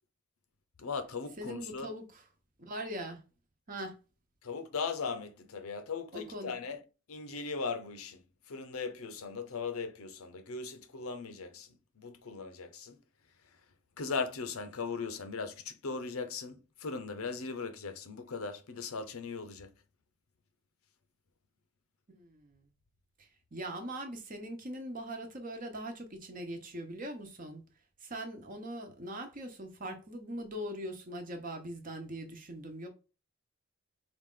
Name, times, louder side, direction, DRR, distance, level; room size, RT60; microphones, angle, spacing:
voice 1, 0.8-1.9 4.4-6.8 7.1-13.0 14.0-19.7, left 4 dB, 80° left, 0.7 m, -38 dB
voice 2, 1.4-2.2 2.6-3.2 3.7-4.0 6.1-6.5 22.1-22.6 23.2-27.6 28.0-32.9, right 1 dB, 40° right, 0.9 m, -41 dB
4.8 x 2.5 x 3.7 m
head